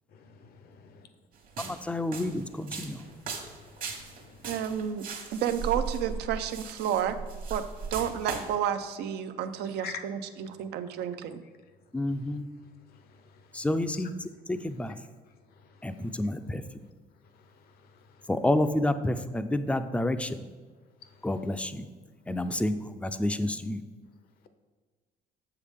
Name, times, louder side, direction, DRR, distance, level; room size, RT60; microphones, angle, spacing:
voice 1, 0.1-0.8 2.9-4.5 9.8-10.0 12.9-13.2 13.9-14.0, left 7 dB, 65° left, 9 dB, 0.7 m, -45 dB
sound 1, 1.4-8.6, right 5 dB, 55° right, 1.3 m, -38 dB
voice 2, 1.6-3.0 11.9-12.5 13.5-14.9 15.8-16.6 18.3-20.5 21.2-21.9 22.3-23.8, left 1 dB, 5° left, 10 dB, 0.4 m, -29 dB
voice 3, 4.5-7.2 7.5-7.6 7.9-11.4 22.4-22.6, right 9 dB, 80° right, 10 dB, 0.5 m, -31 dB
7.1 x 6.7 x 3.5 m, 1.5 s
cardioid pair, 110°, 17 cm